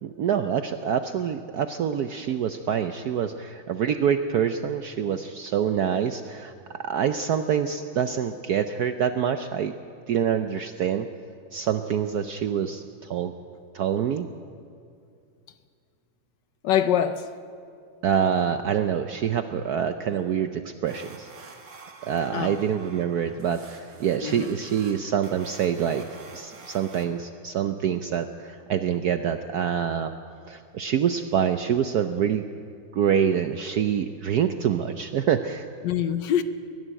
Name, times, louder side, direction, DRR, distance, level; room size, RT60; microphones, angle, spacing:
voice 1, 0.0-9.7 10.1-11.1 11.5-13.3 13.7-14.3 18.0-21.3 22.0-26.1 26.3-30.1 30.5-32.4 32.9-35.7, right 8 dB, 70° right, 8 dB, 0.9 m, -26 dB
voice 2, 16.6-17.3 22.3-22.5 24.2-24.5 35.8-36.4, left 10 dB, 65° left, 11 dB, 1.3 m, -24 dB
sound 1, 20.9-27.1, right 4 dB, 45° right, 2.2 m, -47 dB
22.0 x 12.0 x 10.0 m, 2.3 s
omnidirectional pair, 2.3 m